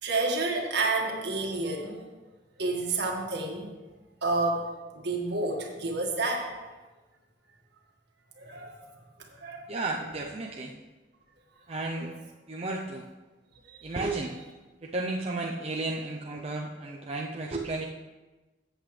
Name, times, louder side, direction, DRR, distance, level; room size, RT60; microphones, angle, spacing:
voice 1, 0.0-2.1 2.6-3.7 4.2-4.7 4.9-6.5 8.4-8.7 9.3-9.7 13.7-13.9, right 3 dB, 65° right, 0 dB, 1.8 m, -29 dB
voice 2, 9.7-10.7 11.7-12.1 12.5-13.0 13.8-14.3 14.8-17.9, right 2 dB, 35° right, 0 dB, 0.7 m, -33 dB
13.5 x 8.2 x 3.3 m, 1.2 s
head